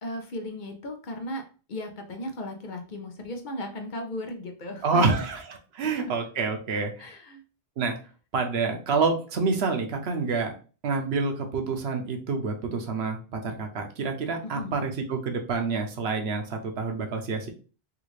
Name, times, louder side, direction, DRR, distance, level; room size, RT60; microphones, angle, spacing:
voice 1, 0.0-5.2 6.0-6.1 7.0-7.4 14.4-14.8, left 1 dB, 55° left, 4 dB, 0.7 m, -36 dB
voice 2, 4.8-5.4 5.7-7.1 7.8-8.0 8.3-10.5 10.8-17.5, right 4 dB, 85° right, 4 dB, 1.0 m, -27 dB
3.6 x 2.4 x 3.1 m, 0.36 s
omnidirectional pair, 1.0 m